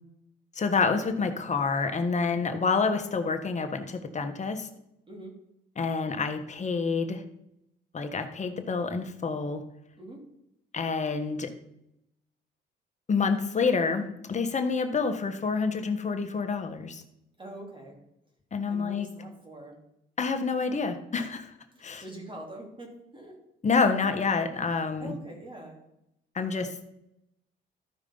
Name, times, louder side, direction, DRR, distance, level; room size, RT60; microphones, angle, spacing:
voice 1, 0.5-4.7 5.8-7.2 7.9-9.6 10.7-11.5 13.1-17.0 18.5-19.1 20.2-21.5 21.8-22.0 23.6-25.1 26.3-26.9, left 4 dB, 35° left, 7 dB, 1.3 m, -28 dB
voice 2, 17.4-18.0 18.7-19.8 21.7-23.4 25.0-25.8, right 1 dB, 25° right, -1 dB, 3.0 m, -44 dB
13.5 x 5.0 x 5.4 m, 0.82 s
cardioid pair, 90°, 20 cm